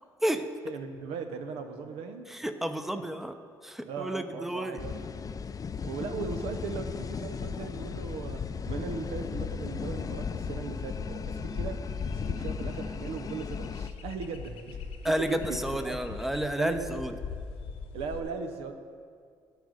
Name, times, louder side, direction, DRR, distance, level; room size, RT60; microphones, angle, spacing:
voice 1, 0.6-2.3 2.9-3.0 3.9-5.0 5.8-11.9 12.1-16.1 16.5-17.3 17.9-18.7, right 5 dB, 70° right, 6 dB, 0.8 m, -38 dB
voice 2, 2.3-3.3 3.6-4.8 15.0-17.1, equal, 5° right, 8 dB, 0.7 m, -31 dB
sound 1, 4.8-13.9, left 6 dB, 35° left, 0.4 m, -36 dB
sound 2, 7.4-18.2, left 5 dB, 65° left, 0.9 m, -42 dB
11.5 x 5.1 x 6.4 m, 2.1 s
hypercardioid pair, 50°, 10 cm